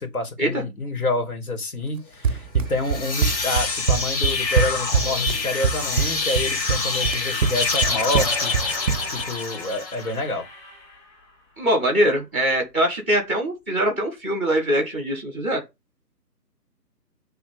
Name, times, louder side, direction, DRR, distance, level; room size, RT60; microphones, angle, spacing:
voice 1, 0.0-8.5 9.1-10.5, left 2 dB, 60° left, 2.7 m, -28 dB
Run, 2.2-9.3, right 6 dB, 55° right, 0.5 m, -24 dB
sound 1, 2.7-10.1, left 4 dB, 90° left, 1.4 m, -26 dB
sound 2, 7.7-11.9, left 2 dB, 40° left, 4.0 m, -38 dB
voice 2, 11.6-15.6, equal, 10° left, 0.8 m, -22 dB
7.2 x 3.3 x 5.3 m
hypercardioid pair, 165°, 49 cm